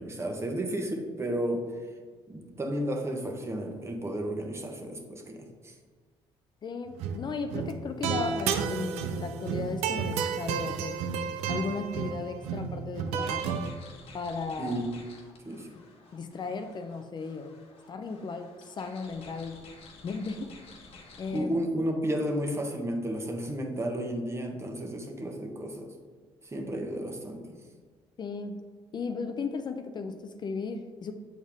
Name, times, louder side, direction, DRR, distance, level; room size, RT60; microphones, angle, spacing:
voice 1, 0.0-1.7 2.3-5.7 14.6-14.8 15.5-15.7 21.3-25.9 26.4-27.5, right 1 dB, 25° right, 3 dB, 1.1 m, -32 dB
voice 2, 6.6-11.0 11.5-13.6 14.1-14.8 16.1-17.5 17.9-19.6 20.0-20.5 21.2-21.5 28.2-28.7 28.9-31.1, left 4 dB, 45° left, 7 dB, 0.5 m, -35 dB
sound 1, 6.9-7.2 7.5-13.7, right 7 dB, 85° right, 0.4 m, -32 dB
sound 2, 13.2-21.4, left 3 dB, 65° left, 1.1 m, -52 dB
6.8 x 4.4 x 3.5 m, 1.6 s
supercardioid pair, 70°, 11 cm